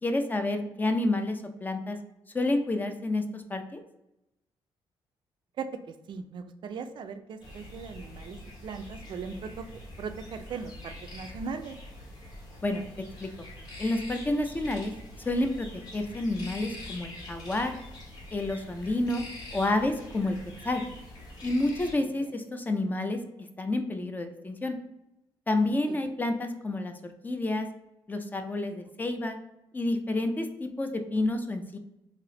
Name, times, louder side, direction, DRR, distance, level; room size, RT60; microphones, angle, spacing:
voice 1, 0.0-2.0 2.3-3.8 12.6-12.9 13.2-13.5 13.8-14.9 15.3-15.7 15.9-17.7 18.3-19.2 19.5-20.4 20.6-20.8 21.4-23.2 23.6-24.7 25.5-26.9 27.2-27.7 28.1-29.4 29.7-31.8, left 2 dB, 20° left, 6 dB, 0.4 m, -29 dB
voice 2, 5.6-9.7 10.0-11.8 21.9-22.3 25.9-26.0, right 5 dB, 55° right, 8 dB, 0.4 m, -39 dB
sound 1, 7.4-21.9, left 1 dB, 45° left, 1.4 m, -44 dB
3.3 x 2.7 x 3.7 m, 0.89 s
cardioid pair, 120°, 10 cm